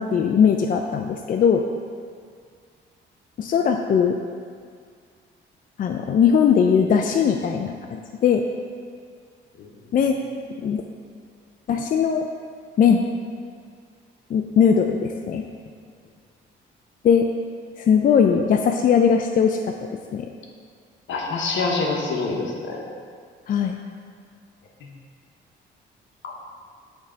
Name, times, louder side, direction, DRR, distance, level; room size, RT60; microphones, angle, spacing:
voice 1, 0.0-1.6 3.4-4.2 5.8-8.4 9.9-10.2 10.6-10.8 11.7-12.3 12.8-13.0 14.3-15.4 17.0-17.3 17.8-19.7 20.1-20.3 23.5-23.8, left 7 dB, 45° left, 4 dB, 0.4 m, -19 dB
voice 2, 21.1-22.8 24.8-24.9 26.2-26.3, left 3 dB, 70° left, 0 dB, 1.0 m, -26 dB
6.6 x 3.5 x 4.9 m, 2.1 s
cardioid pair, 90°, 20 cm